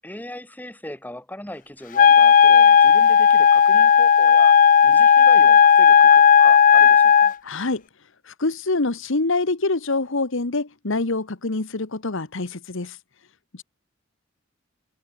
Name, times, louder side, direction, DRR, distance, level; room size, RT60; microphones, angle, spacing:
voice 1, 0.0-4.6 4.8-7.3, left 1 dB, 10° left, 6.9 m, -39 dB
Wind instrument woodwind instrument, 1.9-7.3, left 7 dB, 40° left, 0.5 m, -13 dB
voice 2, 7.4-7.8 8.2-13.0, left 3 dB, 65° left, 1.4 m, -25 dB
head